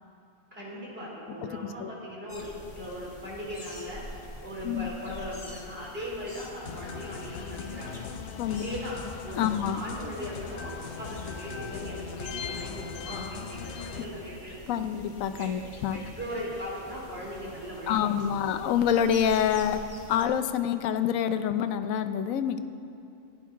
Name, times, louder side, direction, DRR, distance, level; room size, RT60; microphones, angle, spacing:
voice 1, 0.5-4.0 4.4-8.0 8.5-9.0 9.2-10.7 11.0-14.8 15.4-15.5 15.9-18.4, equal, 45° right, -5 dB, 3.3 m, -39 dB
sound 1, 2.3-20.3, left 2 dB, 25° left, 1.0 m, -47 dB
sound 2, 6.7-14.0, left 6 dB, 60° left, 0.8 m, -39 dB
voice 2, 9.4-9.8 14.7-16.0 17.9-22.6, left 8 dB, 85° left, 10 dB, 1.0 m, -27 dB
16.0 x 10.0 x 3.6 m, 2.6 s
omnidirectional pair, 1.4 m